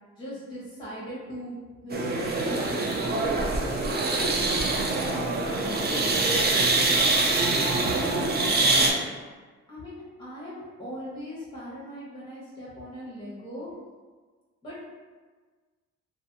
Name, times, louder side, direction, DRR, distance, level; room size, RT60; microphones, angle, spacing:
voice 1, 0.2-1.6 1.8-9.0 9.7-13.7 14.6-14.8, equal, 15° left, -8 dB, 1.0 m, -39 dB
sound 1, 1.9-8.9, right 2 dB, 35° right, 0.4 m, -24 dB
2.5 x 2.5 x 2.7 m, 1.4 s
cardioid pair, 90°, 30 cm